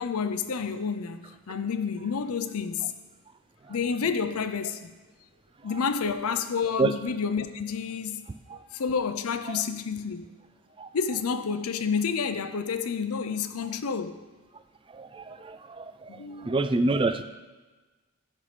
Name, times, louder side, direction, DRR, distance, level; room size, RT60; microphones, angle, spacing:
voice 1, 0.0-2.9 3.7-4.9 5.6-8.2 8.5-10.3 10.9-14.2 16.1-16.6, left 6 dB, 85° left, 0.6 m, -29 dB
voice 2, 14.9-17.2, right 2 dB, 25° right, 0.3 m, -28 dB
14.5 x 5.6 x 3.3 m
head